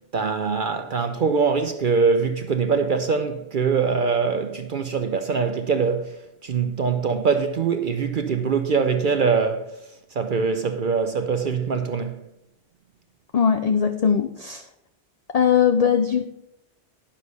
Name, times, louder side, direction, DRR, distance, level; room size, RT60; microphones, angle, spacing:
voice 1, 0.1-9.7 10.1-12.2, right 5 dB, 50° right, 0.7 m, -23 dB
voice 2, 13.3-14.6 15.3-16.3, left 7 dB, 50° left, 0.5 m, -20 dB
10.0 x 6.4 x 5.4 m
omnidirectional pair, 1.2 m